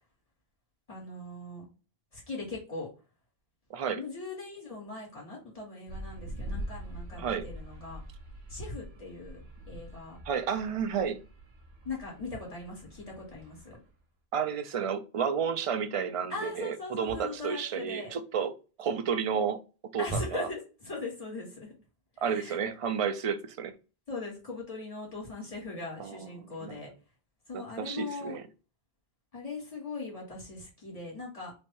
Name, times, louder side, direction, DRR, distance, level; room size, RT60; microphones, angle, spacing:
voice 1, 0.9-1.6 2.1-2.9 3.9-8.0 8.5-9.4 9.7-10.2 11.8-13.8 16.3-18.1 20.0-21.7 22.2-22.6 24.1-26.9 27.5-28.4 29.3-31.5, left 3 dB, 35° left, 1.8 m, -40 dB
voice 2, 3.7-4.0 7.1-7.4 10.3-11.2 14.3-18.5 18.8-19.6 19.9-20.5 22.2-23.7 26.0-26.2 26.6-26.8 27.5-28.5, right 7 dB, 50° right, 0.4 m, -31 dB
sound 1, 5.9-13.9, right 1 dB, 85° right, 1.1 m, -44 dB
3.2 x 2.6 x 4.4 m
omnidirectional pair, 1.0 m